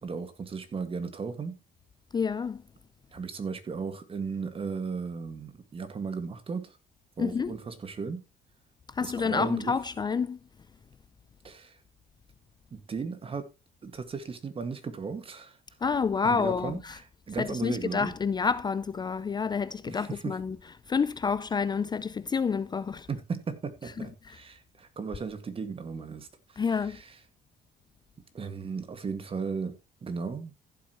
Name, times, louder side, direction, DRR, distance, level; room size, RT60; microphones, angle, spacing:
voice 1, 0.0-1.6 3.1-6.8 7.2-8.2 9.0-9.7 11.4-11.8 12.7-13.5 13.8-15.6 16.2-18.1 19.9-20.4 23.1-27.2 28.3-30.5, right 5 dB, 35° right, 2.0 m, -36 dB
voice 2, 2.1-2.6 7.2-7.5 8.9-10.4 15.8-17.0 17.4-20.6 20.9-23.1 26.6-27.0, left 5 dB, 25° left, 0.5 m, -28 dB
15.0 x 8.1 x 3.1 m
cardioid pair, 110°, 17 cm